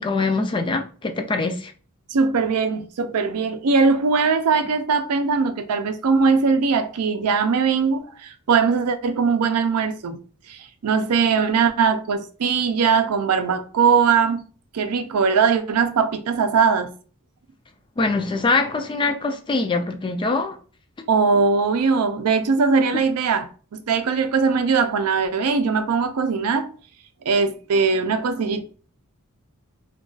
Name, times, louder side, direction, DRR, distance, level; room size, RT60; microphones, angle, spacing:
voice 1, 0.0-1.7 18.0-20.6, left 3 dB, 20° left, 0.3 m, -23 dB
voice 2, 2.1-10.2 10.5-14.4 14.7-16.9 21.1-26.7 27.3-28.6, right 5 dB, 85° right, 0.5 m, -20 dB
2.3 x 2.3 x 3.8 m
head